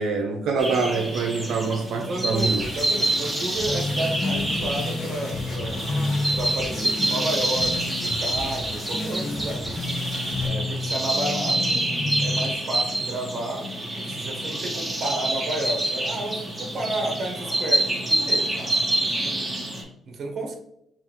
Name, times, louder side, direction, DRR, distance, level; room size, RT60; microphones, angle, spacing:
voice 1, 0.0-2.6, right 4 dB, 80° right, 1 dB, 0.5 m, -25 dB
sound 1, 0.6-19.8, right 1 dB, 10° right, 1.3 m, -27 dB
voice 2, 1.9-5.9 6.3-9.9 10.4-11.8 12.2-13.6 14.0-18.7 19.0-19.6 20.1-20.6, right 1 dB, 50° right, 3 dB, 1.0 m, -32 dB
sound 2, 2.3-10.5, left 2 dB, 60° left, 1.2 m, -39 dB
sound 3, 3.7-12.5, left 2 dB, 30° left, 0.4 m, -31 dB
5.6 x 2.4 x 2.9 m, 0.80 s
cardioid pair, 90°, 0 cm